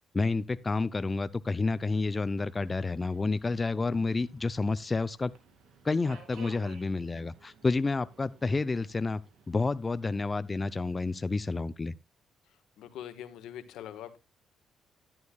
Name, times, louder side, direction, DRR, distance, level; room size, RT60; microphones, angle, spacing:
voice 1, 0.1-5.3 5.8-12.0, left 3 dB, 25° left, 0.5 m, -30 dB
Subway metro underground, 1.8-11.6, right 4 dB, 80° right, 2.5 m, -57 dB
voice 2, 12.8-14.2, left 10 dB, 85° left, 1.3 m, -43 dB
11.5 x 11.0 x 2.3 m
cardioid pair, 90°, 0 cm